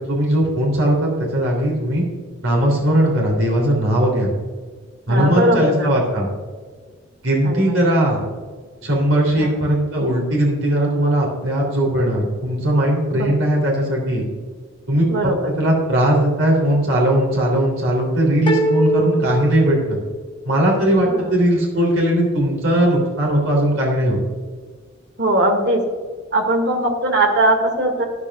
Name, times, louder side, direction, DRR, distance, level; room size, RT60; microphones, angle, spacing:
voice 1, 0.0-2.0 2.4-4.3 5.1-6.3 7.2-8.2 8.8-14.2 14.9-15.3 15.6-20.0 20.4-24.2, right 1 dB, 85° right, -2 dB, 3.2 m, -18 dB
voice 2, 5.1-5.9 7.4-7.8 9.4-9.5 13.1-13.4 15.1-15.4 21.1-21.2 25.2-25.8 26.3-28.1, right 1 dB, 55° right, 3 dB, 2.1 m, -19 dB
sound 1, 18.5-20.5, right 1 dB, 25° left, 1.1 m, -22 dB
13.0 x 10.5 x 2.4 m, 1.5 s
head